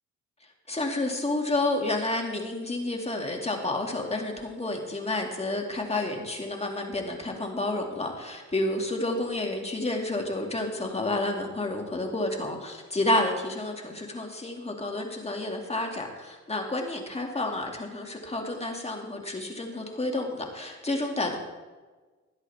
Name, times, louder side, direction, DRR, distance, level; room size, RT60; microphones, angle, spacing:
voice 1, 0.7-21.4, left 2 dB, 20° left, 2 dB, 2.4 m, -30 dB
17.5 x 11.0 x 3.6 m, 1.3 s
cardioid pair, 90°, 30 cm